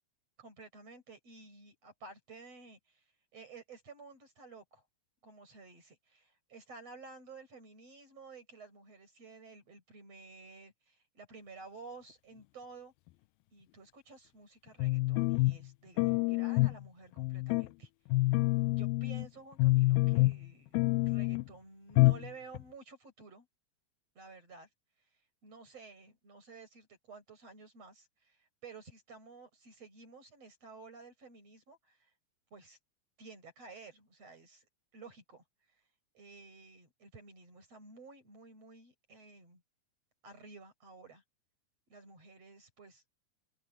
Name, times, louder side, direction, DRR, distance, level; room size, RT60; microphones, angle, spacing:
voice 1, 0.4-3.1 3.3-4.8 5.2-12.9 13.5-17.9 18.8-20.8 21.1-23.5 24.2-24.7 25.4-32.1 32.5-32.8 33.2-35.4 36.1-39.6 40.2-41.2 41.9-43.0, right 4 dB, 45° right, 8.8 m, -53 dB
sound 1, 14.8-15.6 16.0-16.8 17.2-17.7 18.1-19.3 19.6-20.5 20.7-21.5 22.0-22.3 22.5-22.6, left 21 dB, 85° left, 2.4 m, -27 dB
open air
omnidirectional pair, 4.1 m